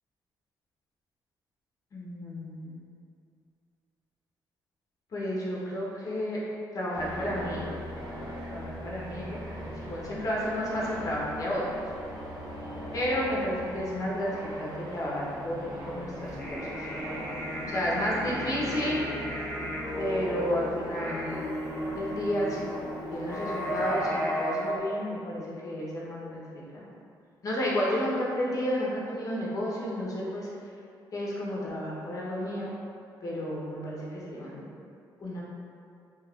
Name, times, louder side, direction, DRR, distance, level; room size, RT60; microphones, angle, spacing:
voice 1, 1.9-2.8 5.1-6.4 6.7-7.7 8.5-11.8 12.9-16.9 17.7-19.0 20.0-21.5 21.9-22.7 23.1-26.8 27.4-30.5 31.1-32.7 33.2-34.6 35.2-35.4, equal, 45° left, -5 dB, 0.7 m, -32 dB
sound 1, 6.9-24.1, equal, 55° right, 0.7 m, -40 dB
sound 2, 16.3-24.7, equal, 10° left, 0.4 m, -34 dB
2.9 x 2.3 x 3.5 m, 2.5 s
cardioid pair, 150°, 8 cm